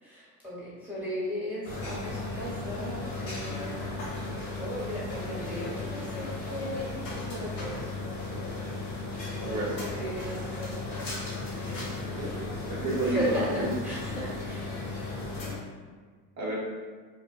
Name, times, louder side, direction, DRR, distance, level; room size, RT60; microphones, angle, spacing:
voice 1, 0.0-4.0 4.6-6.9 7.2-7.9 9.3-10.9 11.7-12.4 13.0-14.6, equal, 5° right, -9 dB, 1.3 m, -37 dB
sound 1, 1.6-15.6, left 2 dB, 85° left, 0.9 m, -35 dB
voice 2, 9.4-9.8 12.2-13.7 16.4-16.6, right 2 dB, 35° right, -5 dB, 0.9 m, -30 dB
2.5 x 2.2 x 2.3 m, 1.5 s
hypercardioid pair, 80°, 49 cm